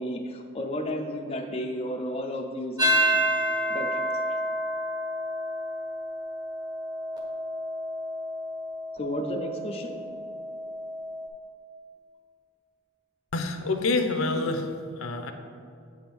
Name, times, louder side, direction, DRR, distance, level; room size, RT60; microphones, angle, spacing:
voice 1, 0.0-3.2 3.7-4.0 9.0-10.0, equal, 30° left, 2 dB, 0.5 m, -32 dB
sound 1, 2.8-11.3, equal, 20° right, 1.0 m, -29 dB
voice 2, 13.3-15.3, left 3 dB, 75° left, 7 dB, 0.6 m, -27 dB
7.9 x 3.6 x 5.9 m, 2.4 s
head